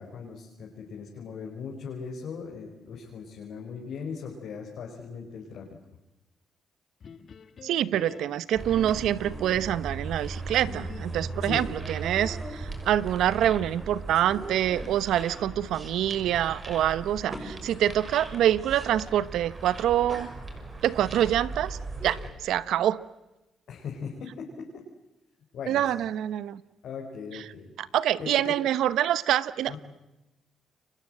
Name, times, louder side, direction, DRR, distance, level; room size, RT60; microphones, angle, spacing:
voice 1, 0.0-5.7 9.5-9.7 11.4-11.7 23.7-24.7 25.5-25.9 26.8-27.7 28.2-28.5 29.7-29.8, left 6 dB, 70° left, -1 dB, 4.8 m, -39 dB
sound 1, 7.0-9.8 10.7-12.6, left 6 dB, 50° left, 1.8 m, -46 dB
voice 2, 7.6-20.3 20.8-23.0 25.7-26.6 27.8-29.7, right 11 dB, 80° right, 17 dB, 1.0 m, -26 dB
sound 2, 8.5-22.3, right 3 dB, 30° right, 5.9 m, -38 dB
30.0 x 23.5 x 7.8 m, 0.98 s
cardioid pair, 90°, 0 cm